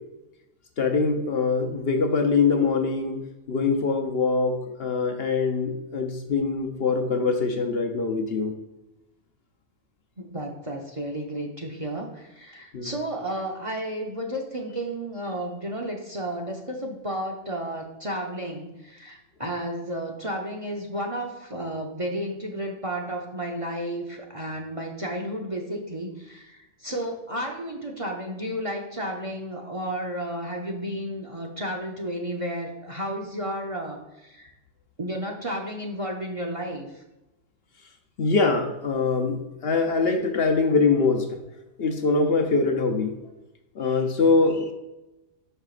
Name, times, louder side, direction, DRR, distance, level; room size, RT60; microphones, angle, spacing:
voice 1, 0.8-3.2 3.5-8.5 12.7-12.9 38.2-41.3 41.8-43.1 43.8-44.7, left 4 dB, 55° left, 4 dB, 0.9 m, -23 dB
voice 2, 10.2-34.5 35.0-37.0, right 1 dB, 30° right, 1 dB, 0.7 m, -32 dB
11.0 x 5.5 x 2.5 m, 1.0 s
omnidirectional pair, 1.3 m